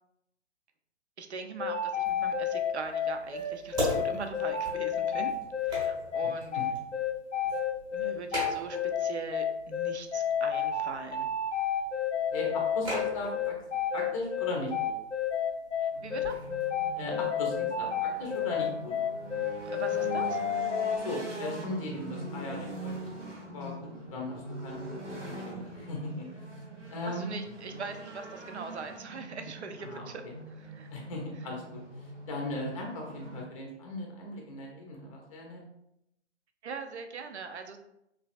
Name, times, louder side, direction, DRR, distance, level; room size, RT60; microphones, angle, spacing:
voice 1, 1.2-5.3 5.6-6.6 7.9-11.3 15.8-16.4 19.6-20.4 27.0-30.2 30.5-30.9 36.6-37.8, right 5 dB, 70° right, 6 dB, 0.5 m, -41 dB
sound 1, 1.6-21.0, left 8 dB, 85° left, 0.6 m, -30 dB
sound 2, 2.1-19.7, right 1 dB, 15° right, 0.8 m, -43 dB
voice 2, 12.3-13.5 13.9-14.9 16.9-18.9 20.9-23.1 23.5-26.6 26.9-27.4 29.8-30.3 30.9-35.6, left 2 dB, 30° left, 0 dB, 0.5 m, -38 dB
sound 3, 15.9-33.4, right 2 dB, 90° right, 0.9 m, -42 dB
3.1 x 2.3 x 2.4 m, 0.81 s
figure-of-eight pair, 130°, 35 cm